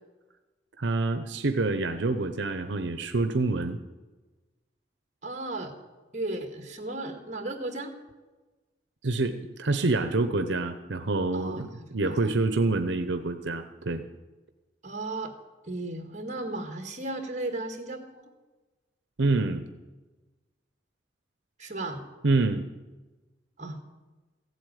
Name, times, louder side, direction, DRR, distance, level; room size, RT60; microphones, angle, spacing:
voice 1, 0.8-3.8 9.0-14.0 19.2-19.6 22.2-22.6, right 3 dB, 80° right, 9 dB, 0.8 m, -27 dB
voice 2, 5.2-5.7 6.1-7.9 11.3-12.3 14.8-15.3 15.7-18.3 21.6-22.0 23.6-23.8, right 2 dB, 40° right, 5 dB, 1.8 m, -35 dB
15.0 x 8.3 x 9.2 m, 1.2 s
head